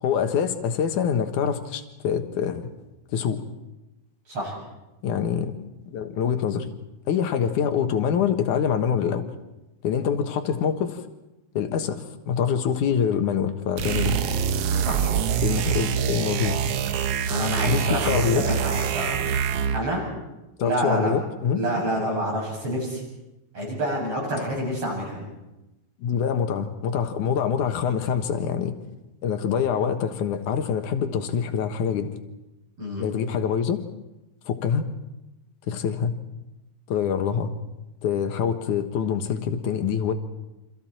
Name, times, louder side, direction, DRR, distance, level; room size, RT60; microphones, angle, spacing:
voice 1, 0.0-2.7 3.1-3.4 5.0-5.5 5.9-6.7 7.1-9.2 9.8-11.0 11.5-14.2 15.4-16.6 17.7-18.4 20.6-21.6 26.0-28.7 29.2-32.1 33.0-33.8 34.5-34.8 35.7-36.1 36.9-37.5 38.0-40.1, left 7 dB, 70° left, 7 dB, 2.8 m, -25 dB
sound 1, 13.8-19.9, right 8 dB, 70° right, 1.5 m, -25 dB
voice 2, 14.8-15.4 17.3-19.2 19.7-20.0 20.6-21.1 21.5-23.0 23.5-25.2 32.8-33.1, equal, 45° right, -2 dB, 8.9 m, -28 dB
29.5 x 25.5 x 4.4 m, 0.98 s
omnidirectional pair, 3.9 m